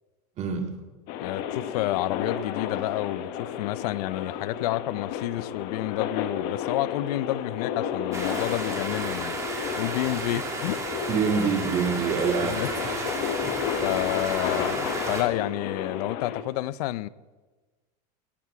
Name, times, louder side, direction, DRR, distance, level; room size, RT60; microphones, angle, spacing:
voice 1, 0.4-0.7 11.1-13.1 13.4-13.6 14.5-14.6, right 6 dB, 35° right, 2.0 m, -27 dB
sound 1, 1.1-16.4, left 8 dB, 55° left, 1.2 m, -32 dB
voice 2, 1.2-9.4 9.8-10.8 12.4-12.7 13.8-17.1, left 16 dB, 75° left, 0.5 m, -30 dB
sound 2, 8.1-15.2, right 3 dB, 15° right, 2.2 m, -33 dB
18.5 x 9.0 x 4.8 m
supercardioid pair, 140°, 20 cm